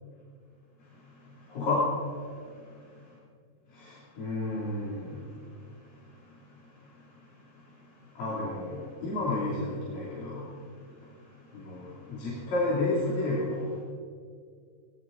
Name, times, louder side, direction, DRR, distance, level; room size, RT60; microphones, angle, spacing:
voice 1, 0.8-3.1 3.7-13.8, left 2 dB, 80° left, -8 dB, 4.7 m, -33 dB
19.5 x 18.0 x 4.0 m, 2.2 s
omnidirectional pair, 3.9 m